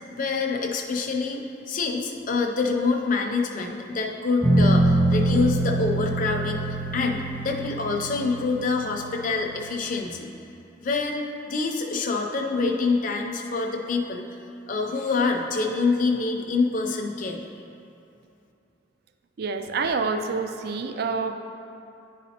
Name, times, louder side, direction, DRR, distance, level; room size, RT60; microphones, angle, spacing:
voice 1, 0.1-10.3 10.8-14.2 14.7-17.4, left 4 dB, 40° left, 2 dB, 0.5 m, -26 dB
sound 1, 4.4-9.9, right 1 dB, 10° right, 0.6 m, -25 dB
voice 2, 19.4-21.3, right 4 dB, 50° right, 7 dB, 0.3 m, -27 dB
10.5 x 4.1 x 2.8 m, 2.7 s
head